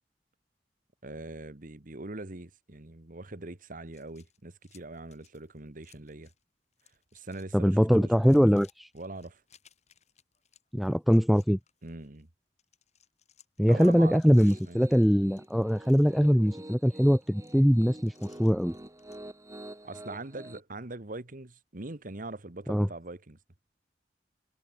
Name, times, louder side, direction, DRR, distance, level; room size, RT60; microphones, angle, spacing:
voice 1, 1.0-6.3 7.1-8.3 8.9-9.4 11.8-12.3 13.7-14.9 19.8-23.4, right 2 dB, 50° right, 1.5 m, -42 dB
sound 1, 3.9-6.4 6.7-7.5 7.8-12.2 12.6-19.2, left 9 dB, 40° left, 7.3 m, -63 dB
voice 2, 7.5-8.9 10.7-11.6 13.6-18.1 18.4-18.7 22.7-22.9, equal, ahead, 0.4 m, -22 dB
Piano, 13.7-20.6, right 1 dB, 15° right, 2.4 m, -47 dB
head